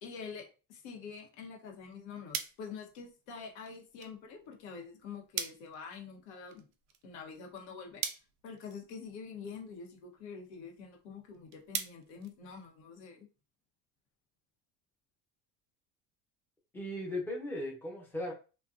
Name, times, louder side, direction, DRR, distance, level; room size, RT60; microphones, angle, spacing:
voice 1, 0.0-6.7 7.0-8.0 8.4-13.3, left 5 dB, 90° left, 2 dB, 0.8 m, -46 dB
sound 1, 1.6-13.1, right 9 dB, 50° right, 0.4 m, -45 dB
voice 2, 16.7-18.3, left 1 dB, 5° left, -2 dB, 0.7 m, -37 dB
2.5 x 2.1 x 2.4 m, 0.33 s
supercardioid pair, 125°, 34 cm